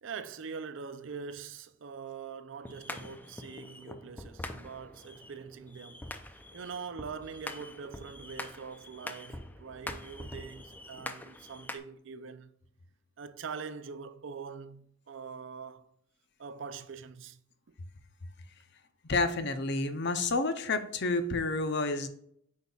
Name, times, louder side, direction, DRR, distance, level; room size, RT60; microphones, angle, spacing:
voice 1, 0.0-6.1 6.5-12.5 13.2-15.9 16.4-17.4 17.7-17.8, right 5 dB, 65° right, 0.5 m, -43 dB
sound 1, 2.6-11.8, left 1 dB, 10° left, 0.4 m, -44 dB
voice 2, 19.0-22.1, left 3 dB, 55° left, 0.7 m, -29 dB
8.1 x 5.3 x 2.4 m
head